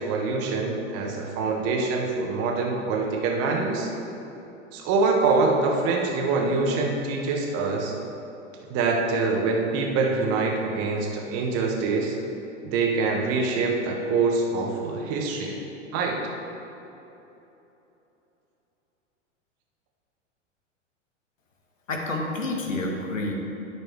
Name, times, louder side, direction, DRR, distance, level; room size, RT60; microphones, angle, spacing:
voice 1, 0.0-3.9 4.7-7.9 8.6-12.1 12.6-15.6 15.9-16.2, right 3 dB, 40° right, 0 dB, 1.4 m, -25 dB
voice 2, 21.9-23.3, left 2 dB, 80° left, 1 dB, 1.5 m, -29 dB
12.0 x 6.2 x 3.4 m, 3.0 s
figure-of-eight pair, 100°, 38 cm